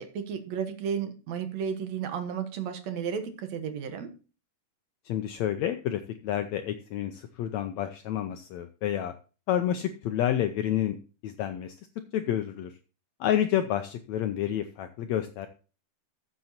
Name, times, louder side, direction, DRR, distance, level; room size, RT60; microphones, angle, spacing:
voice 1, 0.0-4.1, right 7 dB, 60° right, 7 dB, 2.2 m, -33 dB
voice 2, 5.1-9.1 9.5-11.0 11.2-11.7 12.1-12.7 13.2-15.5, left 11 dB, 85° left, 8 dB, 1.6 m, -29 dB
13.5 x 7.6 x 2.8 m, 0.34 s
omnidirectional pair, 3.9 m